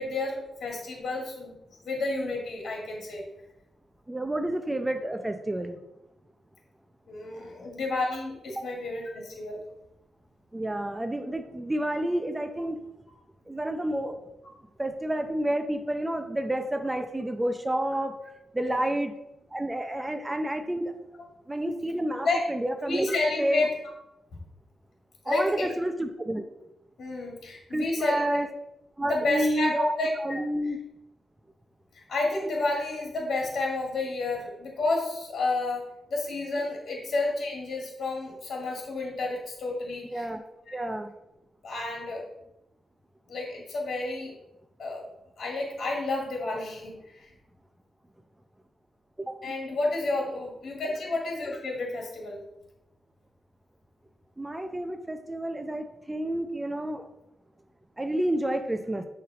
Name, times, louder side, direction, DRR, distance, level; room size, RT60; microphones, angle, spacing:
voice 1, 0.0-1.5 1.8-3.2 7.1-9.6 18.6-18.8 22.2-22.4 22.9-23.7 24.3-24.4 25.3-25.7 27.0-28.2 29.0-30.4 32.0-35.8 36.1-40.3 40.7-40.8 41.6-42.2 43.3-44.3 44.8-45.0 45.4-47.3 49.4-52.4, left 2 dB, 65° left, -1 dB, 1.8 m, -30 dB
voice 2, 4.1-5.8 8.6-8.7 10.5-12.8 13.5-14.2 14.8-18.2 18.5-19.1 19.5-20.9 21.5-23.1 23.4-23.6 25.3-26.5 27.7-28.5 29.0-29.9 30.2-30.8 40.1-40.4 40.7-41.1 49.2-49.4 54.4-57.0 58.0-59.1, right 1 dB, 20° right, 7 dB, 0.6 m, -29 dB
6.6 x 3.3 x 5.0 m, 0.91 s
supercardioid pair, 50°, 0 cm